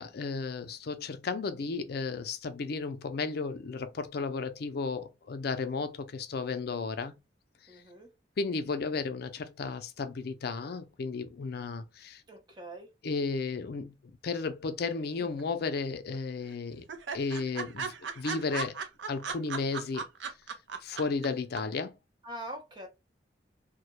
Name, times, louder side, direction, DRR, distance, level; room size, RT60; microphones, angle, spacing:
voice 1, 0.0-7.1 8.4-12.2 13.0-16.8 17.1-18.8 19.1-20.0 20.8-21.9, left 4 dB, 60° left, 0.4 m, -34 dB
voice 2, 7.7-8.1 12.3-12.9 22.2-22.9, right 1 dB, 25° right, 0.6 m, -43 dB
sound 1, 15.2-15.9 16.1-16.2 16.5-16.6 16.9-21.3 21.6-21.7, right 5 dB, 80° right, 0.5 m, -36 dB
2.2 x 2.0 x 2.8 m
head